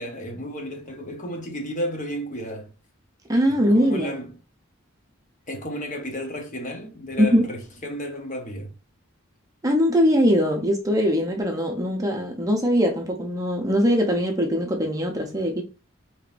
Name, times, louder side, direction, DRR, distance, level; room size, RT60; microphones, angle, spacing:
voice 1, 0.0-2.7 3.5-4.4 5.5-8.7, equal, 35° left, 0.8 m, -32 dB
voice 2, 3.3-4.1 7.2-7.4 9.6-15.6, equal, 15° right, 0.6 m, -21 dB
5.0 x 2.9 x 2.4 m
head